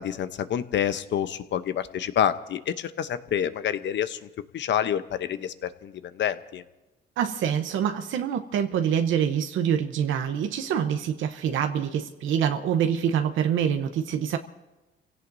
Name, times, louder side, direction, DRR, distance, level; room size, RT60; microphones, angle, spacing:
voice 1, 0.0-6.6, left 9 dB, 65° left, 12 dB, 0.8 m, -28 dB
voice 2, 7.2-14.4, right 8 dB, 80° right, 6 dB, 0.9 m, -25 dB
30.0 x 17.0 x 2.7 m, 1.1 s
cardioid pair, 90°, 20 cm